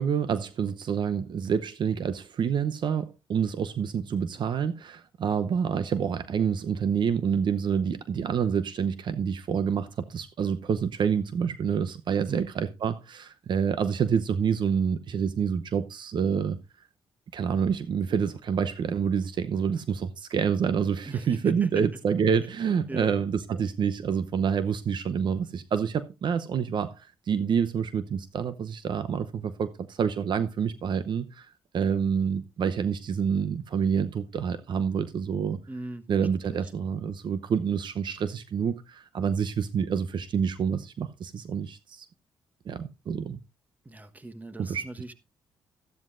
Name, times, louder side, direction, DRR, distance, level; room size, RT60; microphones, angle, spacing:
voice 1, 0.0-16.6 17.3-31.5 31.7-35.6 36.1-42.1 42.7-43.4 44.6-44.8, right 7 dB, 60° right, 0.8 m, -27 dB
voice 2, 21.1-21.9 22.9-23.1 35.7-36.0 36.5-36.6 43.8-45.1, right 2 dB, 20° right, 1.2 m, -39 dB
13.5 x 12.5 x 2.6 m
cardioid pair, 80°, 9 cm